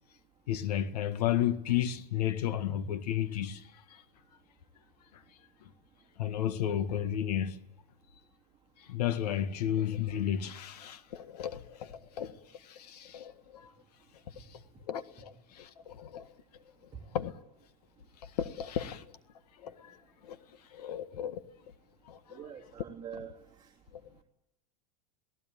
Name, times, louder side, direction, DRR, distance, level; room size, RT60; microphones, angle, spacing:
voice 1, 0.5-3.6 6.2-7.6 8.9-12.3 12.6-13.7 14.9-16.3 17.1-17.3 18.2-19.0 19.6-20.0 20.2-20.4 20.7-21.4 22.1-22.4, left 10 dB, 85° left, 1.7 m, -33 dB
voice 2, 22.3-23.7, right 8 dB, 20° right, 2.6 m, -45 dB
28.5 x 18.0 x 9.2 m
supercardioid pair, 125°, 20 cm